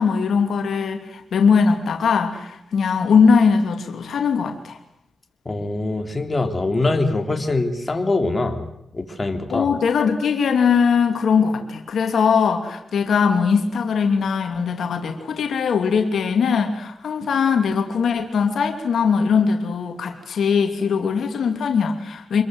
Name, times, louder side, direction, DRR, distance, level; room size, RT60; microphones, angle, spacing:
voice 1, 0.0-4.8 9.5-22.4, left 6 dB, 80° left, 5 dB, 2.8 m, -20 dB
voice 2, 5.4-8.6 8.9-9.7, left 2 dB, 30° left, 4 dB, 3.4 m, -23 dB
26.0 x 21.5 x 8.0 m, 0.80 s
cardioid pair, 70°, 0 cm